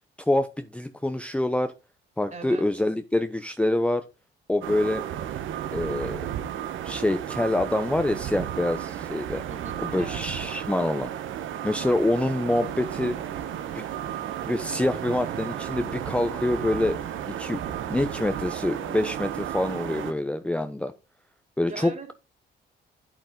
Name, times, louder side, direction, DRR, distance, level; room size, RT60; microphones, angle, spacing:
voice 1, 0.3-1.7 2.2-4.1 4.5-5.0 5.7-6.2 6.8-9.4 9.8-11.1 11.6-13.2 13.7-13.8 14.4-17.0 17.3-20.9 21.6-21.9, left 1 dB, 5° left, 0.7 m, -26 dB
voice 2, 2.3-2.7 9.5-10.3 21.7-22.1, right 4 dB, 35° right, 3.6 m, -40 dB
sound 1, 4.6-20.1, right 10 dB, 80° right, 1.1 m, -33 dB
sound 2, 12.6-16.9, left 5 dB, 85° left, 2.9 m, -54 dB
9.0 x 8.1 x 3.7 m
cardioid pair, 90°, 20 cm